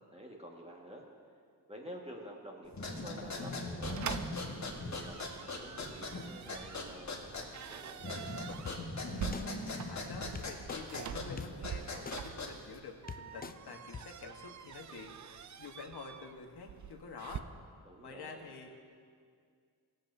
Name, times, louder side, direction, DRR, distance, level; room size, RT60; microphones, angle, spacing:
voice 1, 0.1-1.1 1.7-4.3 4.8-8.3 17.8-18.5, equal, 15° right, -1 dB, 1.7 m, -50 dB
sound 1, 2.7-12.8, left 2 dB, 40° left, 1.6 m, -41 dB
sound 2, 3.8-17.4, right 8 dB, 40° right, 0.5 m, -45 dB
sound 3, 8.7-8.8 9.3-9.5 10.4-10.8 11.4-11.5 12.1-12.2 12.7-12.8 13.1-13.5 13.9-14.0, left 5 dB, 20° left, 0.4 m, -42 dB
voice 2, 9.4-17.5 18.0-18.9, left 4 dB, 60° left, 2 dB, 1.4 m, -48 dB
16.5 x 7.8 x 2.7 m, 2.1 s
cardioid pair, 60°, 44 cm